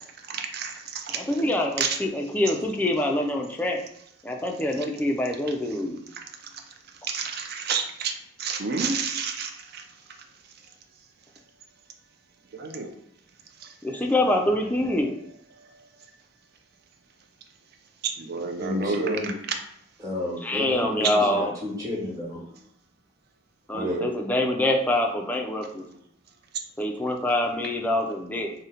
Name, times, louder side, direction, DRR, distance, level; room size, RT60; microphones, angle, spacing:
voice 1, 0.3-1.4 1.8-2.0 6.5-6.6 7.1-8.1 8.4-9.9 12.5-12.9 13.6-13.7 18.0-19.2 21.0-21.1 23.8-24.1, right 5 dB, 55° right, 4 dB, 0.4 m, -29 dB
voice 2, 1.1-3.8 4.2-6.0 13.8-15.2 20.4-21.5 23.7-25.9 26.8-28.5, left 1 dB, 10° left, 2 dB, 0.3 m, -25 dB
voice 3, 18.6-19.3 20.0-22.4 23.7-24.0, left 1 dB, 20° right, -6 dB, 1.2 m, -31 dB
2.7 x 2.1 x 3.7 m, 0.73 s
head